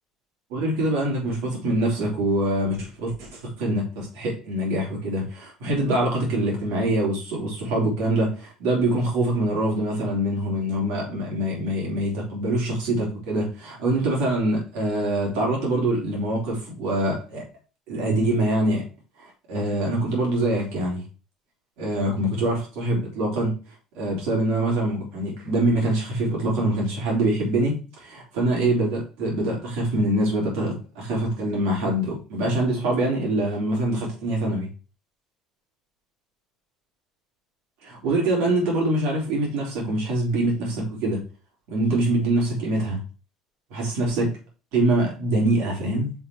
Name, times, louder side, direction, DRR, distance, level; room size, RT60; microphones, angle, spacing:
voice 1, 0.5-17.4 17.9-18.8 19.2-21.1 21.8-23.5 24.0-34.7 37.8-41.2 41.7-43.0 43.7-44.3 44.7-46.1, right 1 dB, 80° right, 3.4 m, -24 dB
5.7 x 4.1 x 4.6 m
supercardioid pair, 110°, 0 cm